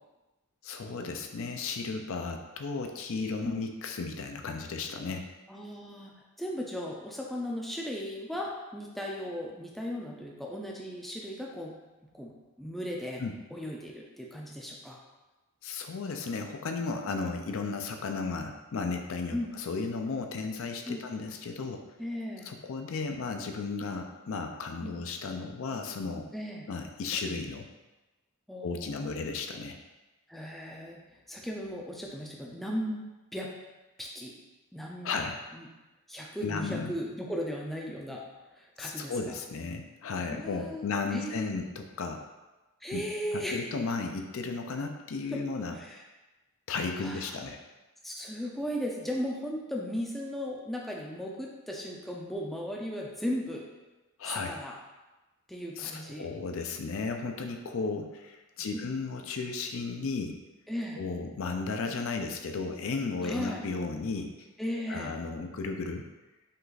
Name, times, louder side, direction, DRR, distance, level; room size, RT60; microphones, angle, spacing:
voice 1, 0.6-5.3 13.2-13.3 15.6-21.8 22.5-26.3 26.7-27.7 28.6-29.8 35.0-35.4 36.4-36.9 38.8-42.2 42.9-43.0 43.3-45.8 46.7-47.6 54.2-54.6 55.8-60.4 61.0-64.5 64.9-66.1, left 4 dB, 60° left, 4 dB, 0.4 m, -34 dB
voice 2, 5.5-6.1 6.4-11.7 12.1-13.2 13.5-15.0 19.3-19.5 20.9-21.1 22.0-22.5 24.8-25.0 26.3-26.7 28.5-29.1 30.3-31.0 31.3-33.0 33.3-33.5 34.0-34.3 34.7-35.1 35.5-35.7 36.1-38.2 38.5-39.1 40.3-40.8 41.1-41.5 42.8-43.6 45.3-45.4 45.7-46.0 47.0-47.4 48.0-53.7 54.2-54.7 55.5-56.3 58.7-58.9 60.7-61.0 63.2-63.6 64.6-65.1, equal, ahead, -2 dB, 0.4 m, -36 dB
5.3 x 2.4 x 4.0 m, 1.1 s
head